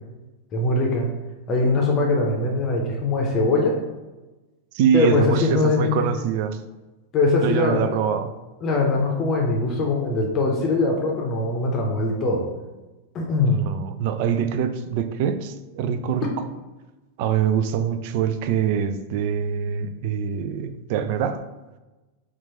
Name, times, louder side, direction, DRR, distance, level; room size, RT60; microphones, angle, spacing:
voice 1, 0.5-1.1 1.5-3.7 4.9-6.1 7.1-7.8 8.6-12.4 13.1-13.6, left 3 dB, 30° left, 0 dB, 0.7 m, -21 dB
voice 2, 4.7-6.6 7.4-8.3 13.4-16.3 17.2-21.4, right 8 dB, 45° right, 10 dB, 0.3 m, -24 dB
4.4 x 2.4 x 4.2 m, 1.1 s
figure-of-eight pair, 90°, 0 cm